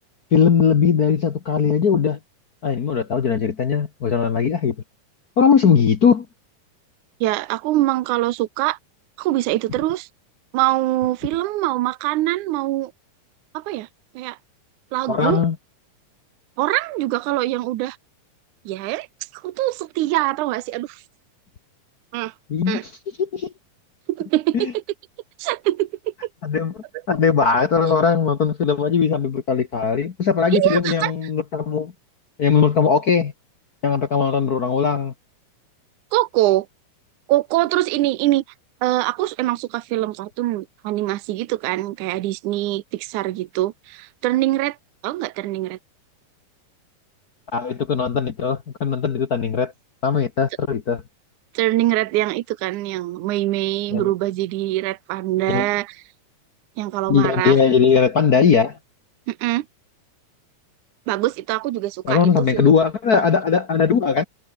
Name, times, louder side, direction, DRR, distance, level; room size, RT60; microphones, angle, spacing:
voice 1, 0.3-2.2 2.6-4.7 5.4-6.2 15.1-15.5 22.5-22.9 23.2-23.5 24.5-24.7 26.4-26.7 27.1-31.9 32.4-33.3 33.8-35.1 47.5-49.7 50.0-51.0 53.9-54.1 55.5-55.7 57.1-58.8 62.0-64.2, left 6 dB, 85° left, 0.8 m, -19 dB
voice 2, 7.2-8.8 9.2-10.1 10.5-12.9 13.5-13.9 14.2-14.4 14.9-15.4 16.6-18.0 18.7-19.1 19.3-21.0 22.1-22.3 22.7-22.8 24.1-24.8 25.4-26.1 30.5-31.1 36.1-36.7 37.3-38.4 38.8-44.8 45.0-45.8 51.5-56.0 56.8-57.6 59.3-59.7 61.1-62.7, right 16 dB, 75° right, 2.1 m, -23 dB
omnidirectional pair, 3.9 m